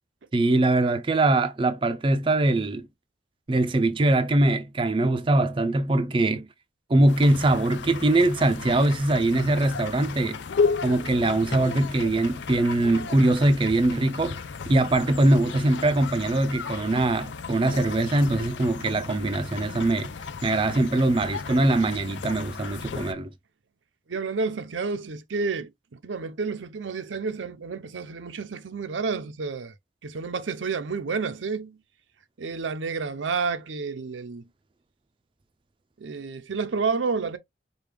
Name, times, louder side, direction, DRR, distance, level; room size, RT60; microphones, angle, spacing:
voice 1, 0.3-2.9 3.5-6.5 6.9-10.4 10.8-14.4 14.7-20.1 20.4-23.3, right 2 dB, 30° right, 0.4 m, -22 dB
sound 1, 7.1-23.1, left 5 dB, 75° left, 0.5 m, -34 dB
voice 2, 24.1-29.7 30.0-31.8 32.4-34.5 36.0-37.4, right 4 dB, 90° right, 0.6 m, -30 dB
4.9 x 2.3 x 3.3 m
head